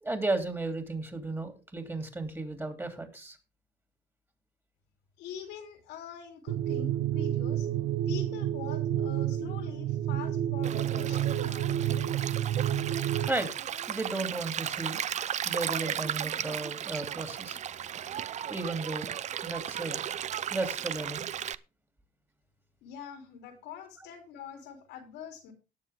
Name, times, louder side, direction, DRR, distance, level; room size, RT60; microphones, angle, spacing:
voice 1, 0.0-3.4 13.3-15.0 15.4-17.6 18.5-19.1 19.4-20.0 20.5-21.3, right 2 dB, 15° right, 6 dB, 3.0 m, -34 dB
voice 2, 5.2-7.7 8.1-11.7 22.8-25.5, left 7 dB, 90° left, 5 dB, 3.3 m, -44 dB
sound 1, 6.5-13.3, right 11 dB, 85° right, 1.0 m, -30 dB
Stream, 10.6-21.6, right 10 dB, 45° right, 0.5 m, -35 dB
18.0 x 7.0 x 3.5 m, 0.29 s
cardioid pair, 110°, 17 cm